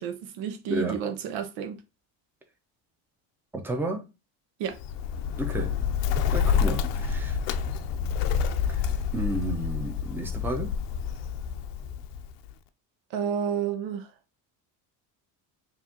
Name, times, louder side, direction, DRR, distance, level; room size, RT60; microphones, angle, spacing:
voice 1, 0.0-1.8 4.6-4.8 13.1-14.1, right 8 dB, 80° right, 0.8 m, -31 dB
voice 2, 3.5-4.0 5.4-5.7 6.3-7.4 8.7-8.9 9.1-10.7, right 1 dB, 5° right, 0.7 m, -31 dB
Bird, 4.7-12.5, left 7 dB, 75° left, 0.6 m, -28 dB
4.8 x 2.7 x 2.8 m
cardioid pair, 115°, 44 cm